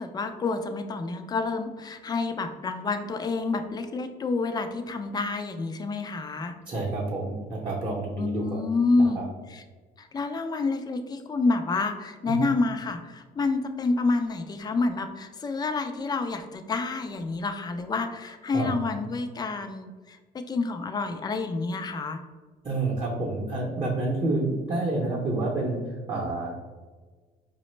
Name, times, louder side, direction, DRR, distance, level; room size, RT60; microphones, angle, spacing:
voice 1, 0.0-6.6 8.2-9.2 9.5-9.6 10.0-22.2, left 3 dB, 25° left, 7 dB, 0.4 m, -28 dB
voice 2, 6.7-8.6 9.0-9.3 12.3-12.4 18.5-18.7 22.6-25.8 26.1-26.6, right 2 dB, 30° right, -5 dB, 0.7 m, -29 dB
4.8 x 2.1 x 3.1 m, 1.4 s
cardioid pair, 110°, 17 cm